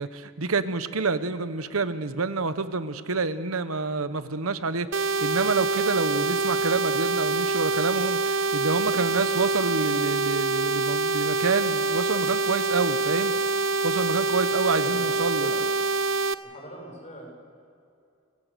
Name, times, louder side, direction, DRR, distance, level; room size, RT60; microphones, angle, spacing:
voice 1, 0.0-13.3 13.8-15.5, right 4 dB, 80° right, 12 dB, 1.0 m, -28 dB
sound 1, 4.9-16.3, right 3 dB, 60° right, 0.6 m, -25 dB
voice 2, 14.6-15.7 16.4-17.3, equal, 35° left, 0 dB, 5.8 m, -41 dB
28.5 x 15.5 x 6.8 m, 2.5 s
head